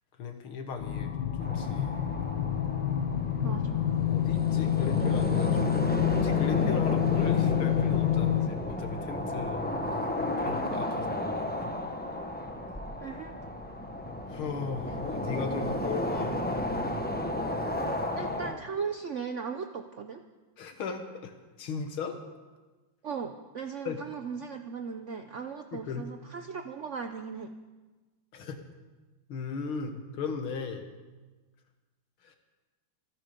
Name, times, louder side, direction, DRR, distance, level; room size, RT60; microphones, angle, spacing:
voice 1, 0.2-2.0 4.0-5.8 6.1-9.6 10.2-11.7 14.1-16.4 20.6-21.3 21.6-22.2 23.9-24.0 25.7-26.1 28.3-28.6 29.3-30.9 32.2-32.4, left 5 dB, 85° left, 6 dB, 2.3 m, -37 dB
sound 1, 0.8-8.5, left 11 dB, 65° left, 1.5 m, -28 dB
sound 2, 1.4-18.5, left 1 dB, 10° left, 0.6 m, -33 dB
voice 2, 3.4-3.9 13.0-13.4 18.2-20.2 23.0-27.5, right 6 dB, 75° right, 7 dB, 0.6 m, -37 dB
26.0 x 9.9 x 5.2 m, 1.2 s
omnidirectional pair, 2.3 m